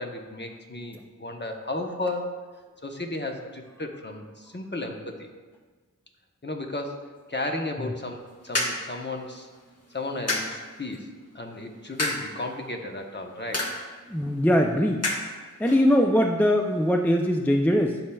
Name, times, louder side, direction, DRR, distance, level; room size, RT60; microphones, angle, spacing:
voice 1, 0.0-2.3 2.8-5.3 6.4-9.5 9.9-13.7, left 2 dB, 35° left, 3 dB, 0.9 m, -34 dB
sound 1, 8.0-17.4, left 1 dB, 50° left, 1.2 m, -35 dB
voice 2, 14.1-15.1 15.6-18.0, equal, 5° left, 3 dB, 0.4 m, -21 dB
12.0 x 5.7 x 2.3 m, 1.4 s
wide cardioid pair, 60°, 33 cm